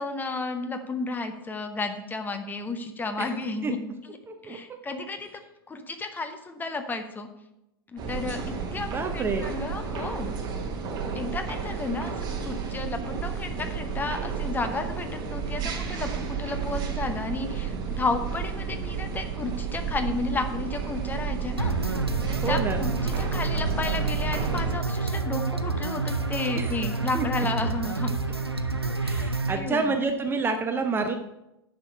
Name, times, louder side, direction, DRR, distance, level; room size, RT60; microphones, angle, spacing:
voice 1, 0.0-3.8 4.1-4.2 4.4-5.3 5.7-7.3 7.9-10.4 11.1-22.0 22.3-28.1 29.0-29.9, left 3 dB, 15° left, 7 dB, 0.8 m, -32 dB
voice 2, 4.3-5.0 8.8-9.5 22.4-22.8 26.6-26.8 27.1-27.3 29.0-31.1, right 4 dB, 15° right, 6 dB, 0.7 m, -29 dB
sound 1, 8.0-24.7, right 6 dB, 35° right, 1.3 m, -32 dB
sound 2, 21.6-29.6, right 3 dB, 90° right, 0.6 m, -28 dB
10.0 x 5.1 x 5.5 m, 0.89 s
figure-of-eight pair, 90°, 13 cm